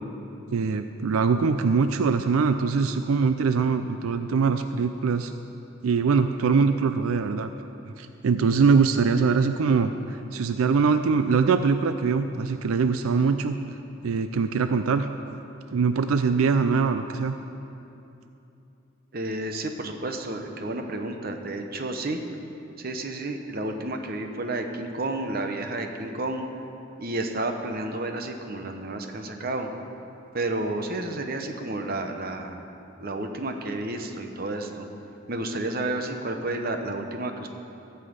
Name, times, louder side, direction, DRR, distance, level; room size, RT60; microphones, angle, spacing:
voice 1, 0.5-5.3 5.8-7.5 8.0-13.6 14.0-15.1 15.7-17.3, right 5 dB, 85° right, 9 dB, 0.4 m, -23 dB
voice 2, 19.1-22.2 22.8-26.5 27.0-29.7 30.3-32.6 33.0-34.9 35.3-37.5, right 2 dB, 45° right, 5 dB, 0.9 m, -31 dB
14.5 x 5.7 x 8.0 m, 2.9 s
head